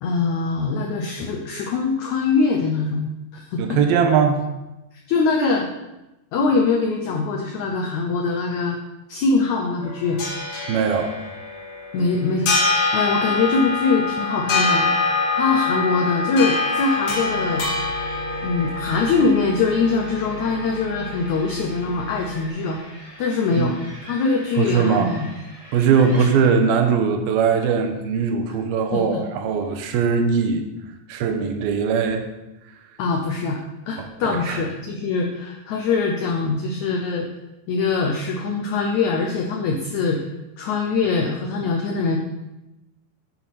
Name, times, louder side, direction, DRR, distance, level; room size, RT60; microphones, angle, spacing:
voice 1, 0.0-3.8 5.1-5.7 6.3-8.8 9.1-10.2 11.9-14.9 15.3-17.6 18.4-22.8 23.2-23.8 24.0-25.3 26.2-26.3 28.9-29.2 33.0-33.6 33.9-37.3 37.7-40.2 40.6-42.2, left 4 dB, 80° left, 1 dB, 1.7 m, -23 dB
voice 2, 3.6-4.4 10.7-11.1 23.6-23.8 24.6-25.1 25.7-30.7 31.1-32.3 34.2-34.6, right 6 dB, 80° right, 5 dB, 2.7 m, -20 dB
sound 1, 9.8-22.5, left 3 dB, 60° left, 3.6 m, -25 dB
sound 2, 12.1-26.5, equal, 10° left, 3.2 m, -44 dB
10.5 x 7.4 x 4.2 m, 0.98 s
omnidirectional pair, 4.4 m